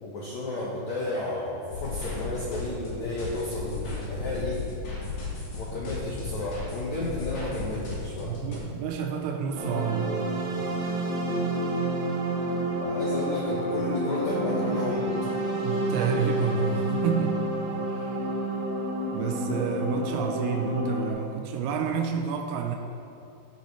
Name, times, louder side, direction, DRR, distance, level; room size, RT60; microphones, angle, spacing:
voice 1, 0.0-4.6 5.5-8.3 12.8-15.1, left 2 dB, 75° left, -4 dB, 1.7 m, -32 dB
sound 1, 1.7-8.6, left 3 dB, 55° left, 3.1 m, -35 dB
voice 2, 8.3-10.5 15.6-17.5 17.9-18.2 19.1-22.8, right 6 dB, 85° right, 4 dB, 2.6 m, -29 dB
sound 2, 9.5-21.1, right 1 dB, 65° right, 2.0 m, -29 dB
15.0 x 6.9 x 3.2 m, 2.8 s
omnidirectional pair, 4.5 m